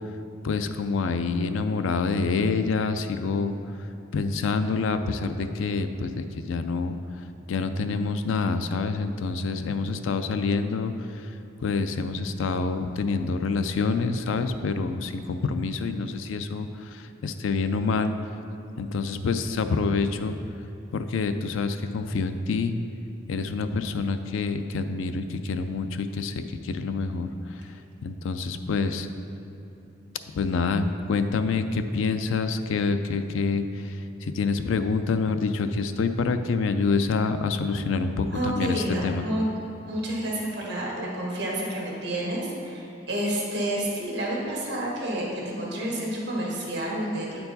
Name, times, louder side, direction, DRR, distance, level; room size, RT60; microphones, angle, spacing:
voice 1, 0.4-3.6 4.1-6.9 7.5-10.9 11.6-16.7 16.9-18.1 18.8-20.3 20.9-22.8 23.3-26.3 26.6-27.3 28.0-29.1 30.4-33.6 34.3-39.2, left 4 dB, 85° left, 9 dB, 0.4 m, -27 dB
voice 2, 38.3-39.5 39.9-47.5, right 1 dB, 60° right, -3 dB, 1.6 m, -29 dB
8.7 x 4.5 x 4.0 m, 2.8 s
head